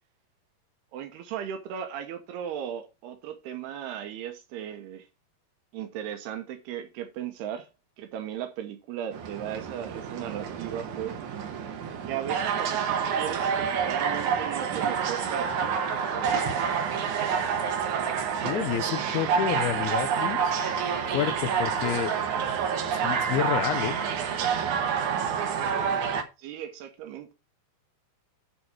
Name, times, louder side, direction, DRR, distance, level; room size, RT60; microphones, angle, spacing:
voice 1, 0.9-5.1 5.7-7.7 8.0-11.2 12.1-15.8 18.5-18.7 26.4-27.4, right 10 dB, 85° right, 3.0 m, -36 dB
sound 1, 9.1-26.2, right 7 dB, 65° right, 2.1 m, -28 dB
sound 2, 16.2-18.6, right 4 dB, 40° right, 2.6 m, -40 dB
voice 2, 18.4-20.5 21.1-22.1 23.0-24.0, left 11 dB, 80° left, 2.6 m, -29 dB
11.0 x 4.1 x 4.6 m
omnidirectional pair, 4.6 m